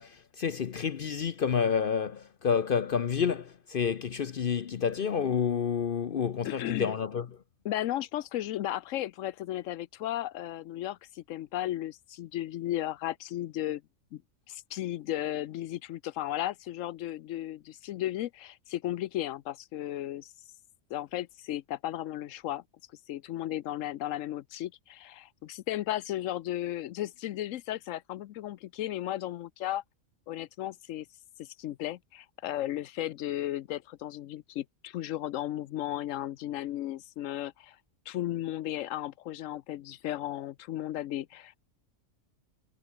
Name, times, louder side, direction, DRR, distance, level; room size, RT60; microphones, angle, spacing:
voice 1, 0.0-7.3, left 7 dB, 50° left, 0.8 m, -29 dB
voice 2, 6.4-6.9 7.6-13.8 14.1-14.2 14.5-20.3 20.9-22.6 23.1-29.8 30.3-31.1 31.4-37.8 38.1-41.6, left 13 dB, 85° left, 1.0 m, -35 dB
omnidirectional pair, 1.3 m